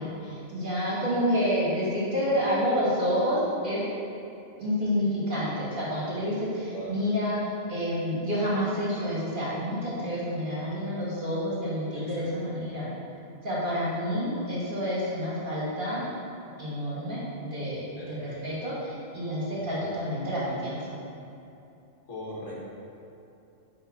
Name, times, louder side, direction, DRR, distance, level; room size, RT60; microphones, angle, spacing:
voice 1, 0.0-3.4 3.6-3.8 4.6-7.4 7.7-12.9 13.4-16.1 16.6-20.8, equal, 40° right, -8 dB, 1.9 m, -29 dB
voice 2, 12.0-12.5 18.0-18.4 19.5-19.8 22.1-22.6, left 1 dB, 70° left, -6 dB, 1.8 m, -41 dB
9.2 x 3.9 x 4.2 m, 2.8 s
omnidirectional pair, 1.3 m